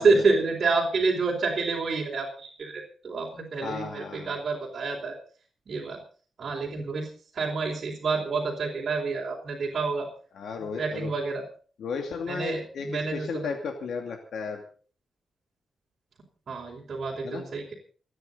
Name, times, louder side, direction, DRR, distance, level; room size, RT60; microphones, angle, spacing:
voice 1, 0.0-5.2 5.7-6.0 6.4-7.1 7.3-10.1 10.6-11.4 12.3-13.5 16.5-17.7, right 4 dB, 50° right, -3 dB, 4.2 m, -28 dB
voice 2, 3.6-4.4 10.3-11.1 11.8-14.6 17.2-17.4, left 5 dB, 90° left, 3 dB, 2.5 m, -34 dB
28.5 x 9.6 x 4.0 m, 0.41 s
wide cardioid pair, 120°, 0 cm